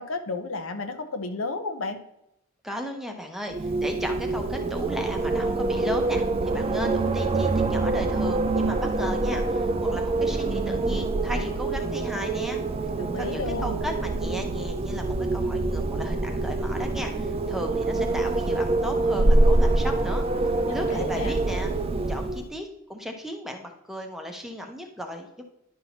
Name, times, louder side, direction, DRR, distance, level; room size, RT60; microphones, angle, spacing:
voice 1, 0.0-2.0 13.0-13.8 20.6-21.3, left 3 dB, 75° left, 7 dB, 0.7 m, -32 dB
voice 2, 2.6-12.6 13.2-20.2 20.7-21.7 22.1-25.4, equal, ahead, 3 dB, 0.7 m, -35 dB
Wind, 3.5-22.5, right 2 dB, 30° right, 0.3 m, -25 dB
10.0 x 5.6 x 2.9 m, 0.83 s
head